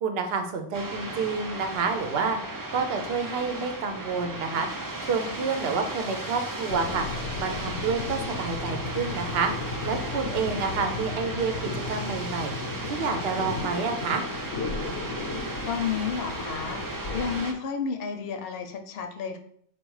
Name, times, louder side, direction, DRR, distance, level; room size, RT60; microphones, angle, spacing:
voice 1, 0.0-2.4 2.7-4.7 5.0-7.1 7.4-9.5 9.8-12.5 12.9-14.2, right 5 dB, 65° right, 6 dB, 0.9 m, -29 dB
sound 1, 0.7-17.5, right 2 dB, 35° right, 0.3 m, -36 dB
sound 2, 6.7-17.4, left 3 dB, 90° left, 1.0 m, -35 dB
voice 2, 10.3-10.7 15.7-16.8 17.1-19.4, left 6 dB, 65° left, 5 dB, 0.7 m, -31 dB
4.6 x 2.3 x 4.7 m, 0.64 s
omnidirectional pair, 1.1 m